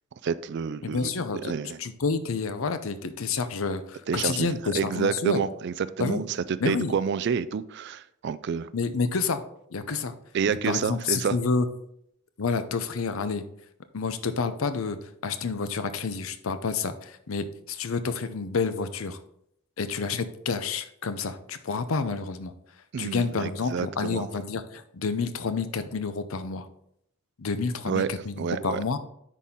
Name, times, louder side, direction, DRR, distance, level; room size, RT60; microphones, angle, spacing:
voice 1, 0.2-1.1 1.4-1.8 4.1-4.5 4.8-8.7 10.3-11.3 22.9-24.3 27.9-28.1 28.4-28.8, right 6 dB, 55° right, 16 dB, 0.3 m, -29 dB
voice 2, 0.8-1.5 1.8-5.4 6.0-6.2 6.6-6.9 8.7-9.4 9.7-10.1 10.6-11.7 12.4-13.4 13.9-19.2 19.8-22.5 23.0-26.7 27.4-29.0, left 4 dB, 80° left, 11 dB, 0.6 m, -29 dB
10.0 x 4.1 x 3.7 m, 0.73 s
head